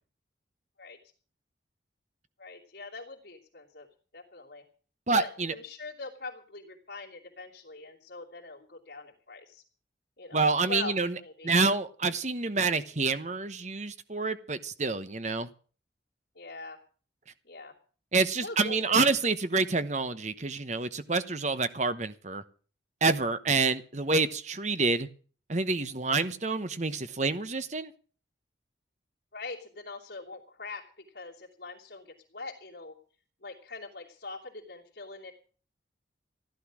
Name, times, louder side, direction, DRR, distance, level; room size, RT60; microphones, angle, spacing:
voice 1, 2.4-3.9 4.1-4.6 5.1-9.6 10.2-10.4 10.7-10.9 11.2-11.5 16.3-16.8 17.4-17.7 18.4-18.8 29.3-33.0 33.4-35.3, left 3 dB, 65° left, -6 dB, 2.9 m, -42 dB
voice 2, 5.1-5.5 10.3-11.1 11.4-15.5 18.1-22.4 23.0-25.1 25.5-27.9, right 3 dB, 40° right, 11 dB, 1.0 m, -27 dB
15.5 x 12.0 x 6.2 m, 0.41 s
head